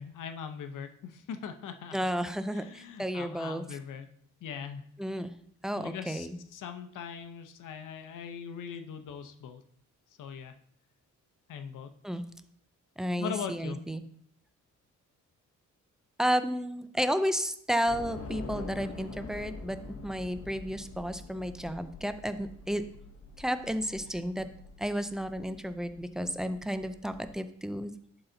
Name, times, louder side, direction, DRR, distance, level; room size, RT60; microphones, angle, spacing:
voice 1, 0.0-2.0 2.5-4.1 4.4-4.8 5.8-9.6 10.2-10.6 11.5-11.9 13.2-13.8, left 7 dB, 80° left, 8 dB, 0.8 m, -40 dB
voice 2, 1.9-3.6 5.0-5.3 5.6-6.4 12.0-12.2 13.0-14.0 16.2-22.8 23.4-24.5 24.8-27.9, equal, ahead, 10 dB, 0.4 m, -32 dB
Train / Subway metro underground, 17.9-27.3, left 4 dB, 50° left, 0.9 m, -45 dB
11.0 x 4.0 x 3.9 m, 0.67 s
cardioid pair, 135°, 31 cm